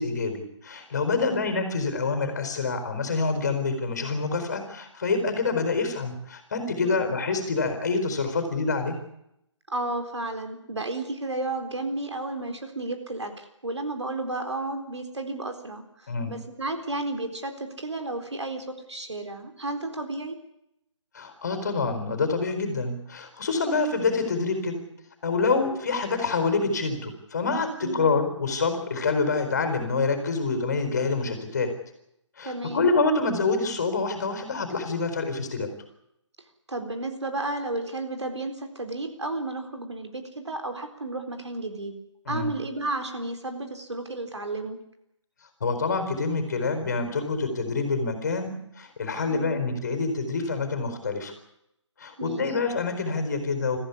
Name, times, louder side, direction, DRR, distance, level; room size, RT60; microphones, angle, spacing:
voice 1, 0.0-8.9 16.1-16.4 21.1-24.8 25.2-31.7 32.4-35.7 42.3-42.6 45.6-51.3 52.0-53.8, left 4 dB, 35° left, 7 dB, 4.4 m, -27 dB
voice 2, 1.1-1.5 6.8-7.2 9.7-20.4 27.8-28.1 32.4-32.9 36.7-42.0 42.3-44.8 49.3-49.6 52.2-52.4, right 2 dB, 65° right, 5 dB, 4.0 m, -32 dB
23.5 x 15.0 x 9.8 m, 0.80 s
figure-of-eight pair, 150°, 16 cm